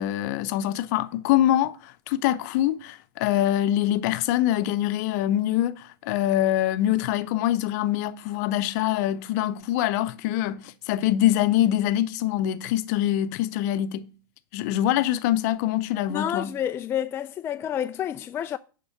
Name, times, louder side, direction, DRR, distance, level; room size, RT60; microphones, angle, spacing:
voice 1, 0.0-1.8 2.1-14.1 14.5-16.5, left 12 dB, 50° left, 0.7 m, -24 dB
voice 2, 16.1-18.6, left 10 dB, 20° left, 0.3 m, -29 dB
9.6 x 3.7 x 6.5 m
hypercardioid pair, 105°, 12 cm